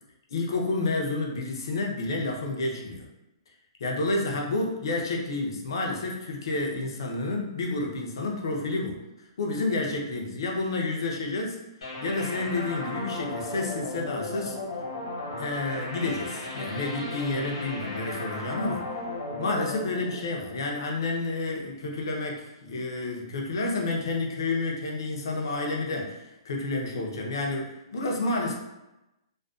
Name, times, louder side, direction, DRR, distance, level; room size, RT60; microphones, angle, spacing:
voice 1, 0.3-3.1 3.8-9.0 9.4-11.6 12.0-14.6 15.4-18.9 19.4-28.5, left 2 dB, 55° left, 0 dB, 0.5 m, -30 dB
sound 1, 11.8-21.2, left 2 dB, 80° left, 1.0 m, -35 dB
2.4 x 2.2 x 2.3 m, 0.95 s
hypercardioid pair, 180°, 3 cm